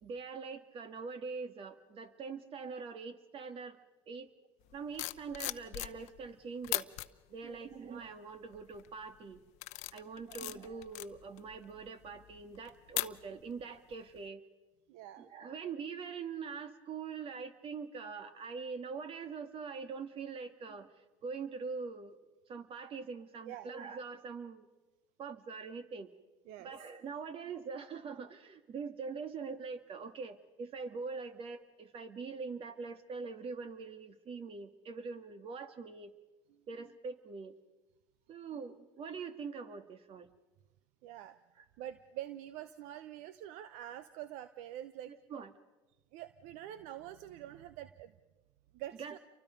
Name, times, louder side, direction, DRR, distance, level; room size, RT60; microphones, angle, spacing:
voice 1, 0.0-3.8 4.1-4.3 4.7-6.9 7.3-9.4 9.9-14.4 15.2-20.9 21.2-22.2 22.5-24.7 25.2-26.1 26.6-36.1 36.7-37.5 38.3-40.3 45.1-45.5 49.0-49.1, right 5 dB, 50° right, 8 dB, 2.2 m, -43 dB
sound 1, 4.7-6.3 6.6-7.1 7.7-8.1 8.5-8.9 9.3-13.6 13.9-14.2, left 19 dB, 70° left, 0.8 m, -40 dB
voice 2, 7.4-7.7 10.3-10.4 14.9-15.3 23.4-23.7 26.4-26.9 36.5-36.6 38.4-38.5 39.1-39.2 41.0-41.4 41.8-45.1 46.1-48.1 48.7-49.2, right 12 dB, 75° right, 13 dB, 0.8 m, -46 dB
29.5 x 24.0 x 5.3 m, 1.1 s
supercardioid pair, 85°, 12 cm